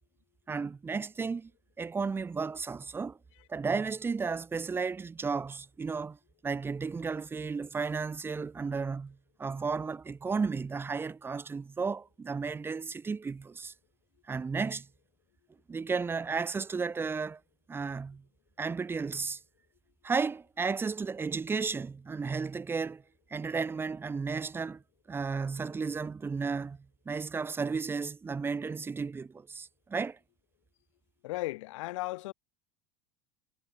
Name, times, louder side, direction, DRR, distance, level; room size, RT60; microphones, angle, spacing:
voice 1, 0.5-1.5 1.8-3.2 3.5-6.2 6.4-13.7 14.3-14.9 15.7-17.4 17.7-18.2 18.6-19.4 20.0-23.0 23.3-24.8 25.1-26.8 27.0-30.2, right 5 dB, 15° right, 6.5 m, -33 dB
voice 2, 31.2-32.3, left 20 dB, 90° left, 6.4 m, -35 dB
cardioid pair, 160°, 15 cm